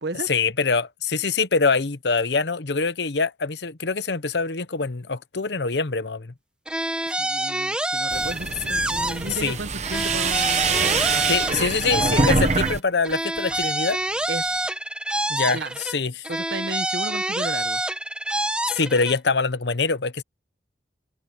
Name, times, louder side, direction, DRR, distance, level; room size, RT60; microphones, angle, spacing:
voice 1, 0.3-6.3 9.3-9.6 11.3-14.0 15.3-16.3 18.7-20.2, left 4 dB, 75° left, 1.0 m, -24 dB
sound 1, 6.7-9.6 9.8-12.8 13.0-16.0 16.2-19.2, right 1 dB, 5° right, 1.4 m, -27 dB
voice 2, 7.0-12.0 14.3-14.6 15.5-15.8 16.3-17.8, right 2 dB, 75° right, 1.2 m, -34 dB
sound 2, 8.1-12.8 13.1-13.7, right 4 dB, 40° right, 1.0 m, -25 dB
head